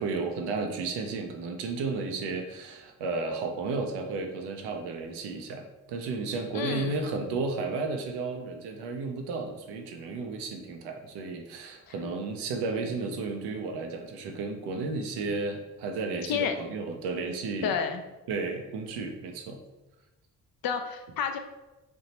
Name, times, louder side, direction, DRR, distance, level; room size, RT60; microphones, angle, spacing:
voice 1, 0.0-17.8 18.3-19.6, right 3 dB, 75° right, 4 dB, 0.8 m, -33 dB
voice 2, 6.5-7.0 16.3-16.5 17.6-18.0 20.6-21.4, left 7 dB, 60° left, 6 dB, 0.7 m, -29 dB
3.5 x 2.9 x 4.2 m, 1.0 s
hypercardioid pair, 50°, 40 cm